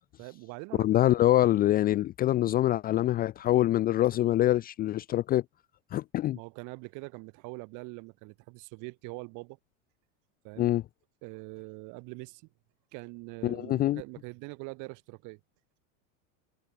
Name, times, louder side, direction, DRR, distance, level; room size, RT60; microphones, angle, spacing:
voice 1, 0.2-1.1 6.3-9.6 10.4-10.7 11.2-12.4 12.9-15.4, right 28 dB, 50° right, 2.9 m, -43 dB
voice 2, 0.8-5.4 5.9-6.4 10.6-10.8 13.4-14.0, left 14 dB, 25° left, 0.5 m, -25 dB
supercardioid pair, 165°, 38 cm